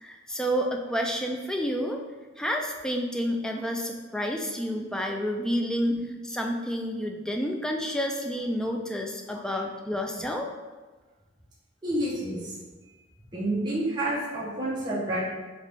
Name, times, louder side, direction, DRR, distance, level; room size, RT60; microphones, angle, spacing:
voice 1, 0.0-2.0 2.4-6.0 6.2-10.5, equal, 5° left, 1 dB, 0.3 m, -29 dB
voice 2, 11.8-12.5 13.3-15.2, right 1 dB, 20° right, -8 dB, 0.9 m, -29 dB
4.1 x 3.1 x 3.4 m, 1.3 s
head